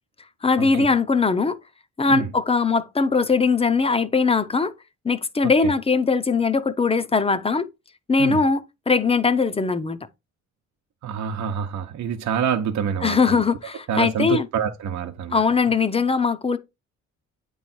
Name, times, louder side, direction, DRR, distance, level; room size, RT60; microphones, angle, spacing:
voice 1, 0.4-1.6 2.0-4.7 5.0-7.7 8.1-8.6 8.9-10.0 13.0-14.5 15.3-16.6, left 4 dB, 20° left, 0.7 m, -20 dB
voice 2, 11.0-13.4 13.9-15.4, right 7 dB, 65° right, 0.9 m, -27 dB
8.8 x 3.2 x 4.3 m
cardioid pair, 90°, 30 cm